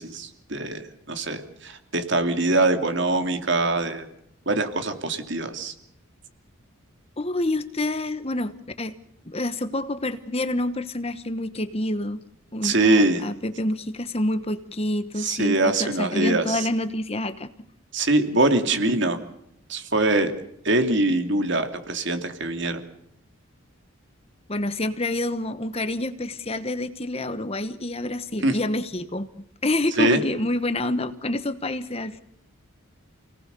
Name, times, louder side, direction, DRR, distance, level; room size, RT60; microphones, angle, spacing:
voice 1, 0.0-4.1 4.5-5.7 12.6-13.2 15.2-16.7 17.9-19.2 19.7-20.3 20.6-22.8 28.4-28.6 30.0-30.2, right 2 dB, 55° right, 7 dB, 2.7 m, -23 dB
voice 2, 7.2-8.9 9.2-12.2 12.5-17.5 24.5-32.2, left 1 dB, 30° left, 11 dB, 1.2 m, -28 dB
29.5 x 18.5 x 6.9 m, 0.76 s
head